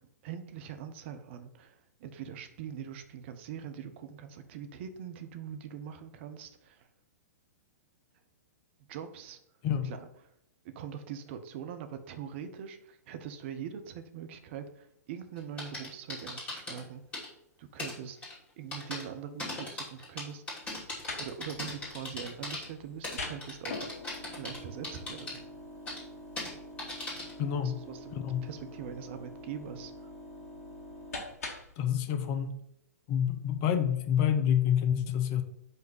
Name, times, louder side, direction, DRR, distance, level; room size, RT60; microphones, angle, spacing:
voice 1, 0.2-6.9 8.8-9.4 9.8-10.1 10.7-17.3 17.6-20.7 21.2-23.9 24.3-25.4 27.6-28.1 28.4-30.1, right 8 dB, 45° right, 8 dB, 0.9 m, -43 dB
sound 1, 15.4-16.8 17.1-17.3 17.8-17.9 18.2-18.3 18.7-19.0 19.4-22.6 23.0-24.6 24.8-25.4 25.9-26.0 26.4-26.5 26.8-27.3, left 2 dB, 15° left, 2.7 m, -38 dB
sound 2, 20.6-31.8, left 2 dB, 60° left, 1.7 m, -45 dB
voice 2, 27.4-27.8 28.1-28.5 31.8-32.6 33.1-35.4, left 9 dB, 35° left, 8 dB, 0.6 m, -28 dB
5.4 x 3.8 x 5.5 m, 0.74 s
figure-of-eight pair, 110°, 9 cm